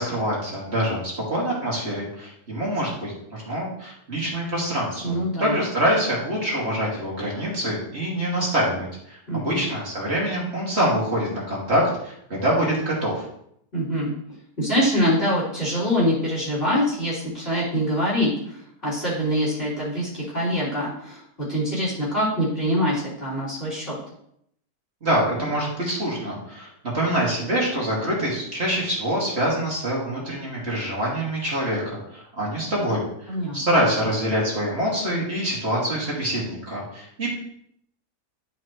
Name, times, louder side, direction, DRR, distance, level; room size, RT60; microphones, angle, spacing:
voice 1, 0.0-13.3 25.0-26.7 26.9-31.8 32.1-33.0 33.5-37.3, equal, 40° right, -5 dB, 2.6 m, -25 dB
voice 2, 5.0-5.6 9.3-9.6 13.7-14.1 14.6-24.0 33.3-33.9, equal, 30° left, -11 dB, 3.8 m, -24 dB
11.5 x 5.8 x 3.1 m, 0.72 s
omnidirectional pair, 1.8 m